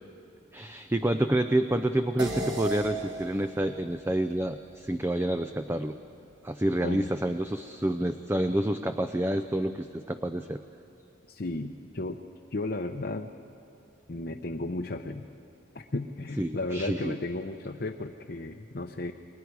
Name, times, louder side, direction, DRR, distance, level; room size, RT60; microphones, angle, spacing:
voice 1, 0.5-6.0 6.4-10.6 16.4-17.2, right 1 dB, 10° right, 8 dB, 0.4 m, -28 dB
sound 1, 2.2-6.9, right 1 dB, 55° right, 4.3 m, -39 dB
voice 2, 11.3-12.2 12.5-13.3 14.1-15.3 15.7-19.1, left 2 dB, 50° left, 2 dB, 0.7 m, -34 dB
29.5 x 21.0 x 4.7 m, 3.0 s
head